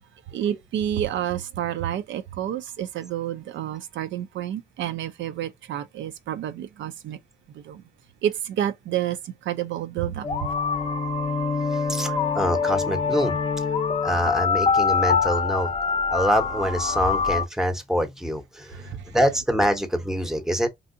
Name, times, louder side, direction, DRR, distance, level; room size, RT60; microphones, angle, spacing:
voice 1, 0.3-7.2 7.5-7.8 8.2-10.3 18.7-19.0, right 11 dB, 70° right, 0.4 m, -29 dB
sound 1, 10.2-17.5, left 5 dB, 30° left, 0.6 m, -24 dB
voice 2, 11.9-13.4 14.0-15.7 16.1-18.7 19.1-20.7, equal, ahead, 0.7 m, -25 dB
3.3 x 2.7 x 2.5 m
cardioid pair, 90°, 20 cm